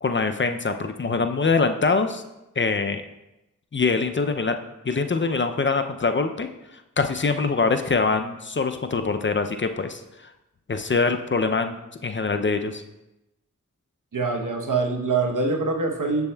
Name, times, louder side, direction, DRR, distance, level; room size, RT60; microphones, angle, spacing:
voice 1, 0.0-2.2 2.6-3.0 3.7-4.6 4.9-6.5 7.0-10.0 10.7-12.8, left 4 dB, 35° left, 7 dB, 0.4 m, -24 dB
voice 2, 14.1-16.3, right 3 dB, 70° right, 2 dB, 0.9 m, -24 dB
6.9 x 6.9 x 2.2 m, 0.93 s
wide cardioid pair, 40°, 32 cm